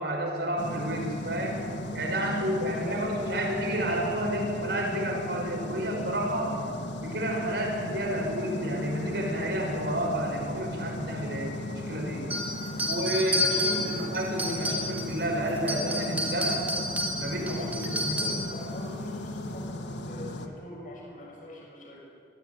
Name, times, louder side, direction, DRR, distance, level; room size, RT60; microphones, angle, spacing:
voice 1, 0.0-1.6 1.9-6.5 7.0-12.3 12.9-16.6 17.2-18.2, right 1 dB, 65° right, 0 dB, 5.8 m, -30 dB
sound 1, 0.6-20.5, left 1 dB, 80° left, 1.6 m, -36 dB
voice 2, 2.1-3.4 6.3-6.8 12.6-14.1 17.5-22.0, left 1 dB, 45° left, -2 dB, 6.0 m, -43 dB
sound 2, 12.3-15.2 15.6-18.6, left 1 dB, 10° right, 2.6 m, -30 dB
23.0 x 15.0 x 9.3 m, 2.4 s
head